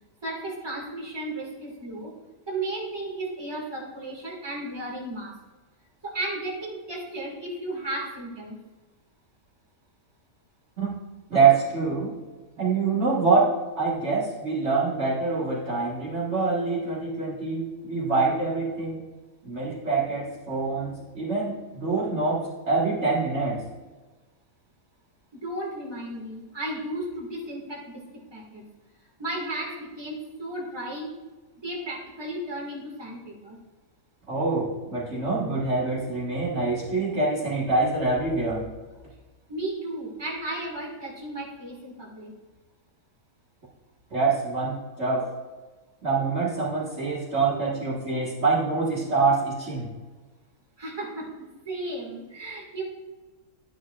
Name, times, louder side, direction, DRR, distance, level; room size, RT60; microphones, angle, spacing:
voice 1, 0.2-2.1 2.5-5.4 6.0-8.6 25.3-28.0 28.3-28.6 29.2-31.1 31.6-33.6 39.5-42.3 50.8-52.8, right 1 dB, 15° right, -3 dB, 1.9 m, -34 dB
voice 2, 11.3-12.1 12.6-19.1 19.4-23.6 34.3-38.7 44.1-45.3 46.0-49.9, right 4 dB, 50° right, -6 dB, 1.8 m, -25 dB
10.5 x 9.5 x 2.4 m, 1.3 s
omnidirectional pair, 1.6 m